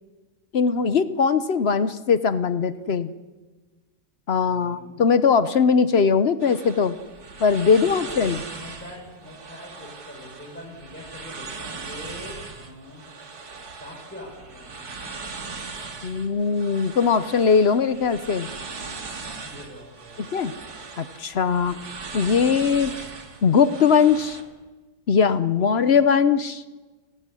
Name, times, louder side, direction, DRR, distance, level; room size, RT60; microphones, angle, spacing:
voice 1, 0.5-3.1 4.3-7.0 7.4-8.4 16.0-18.5 20.3-20.5 21.0-21.8 22.1-22.9 23.4-24.4 25.1-26.6, left 6 dB, 50° left, 13 dB, 0.8 m, -20 dB
voice 2, 4.4-5.1 7.7-13.1 13.7-14.7 15.1-15.3 18.4-20.3 25.6-25.9, left 1 dB, 5° left, -4 dB, 5.3 m, -44 dB
sound 1, 6.4-24.4, right 4 dB, 60° right, 2.5 m, -39 dB
30.0 x 12.5 x 9.9 m, 1.3 s
omnidirectional pair, 2.0 m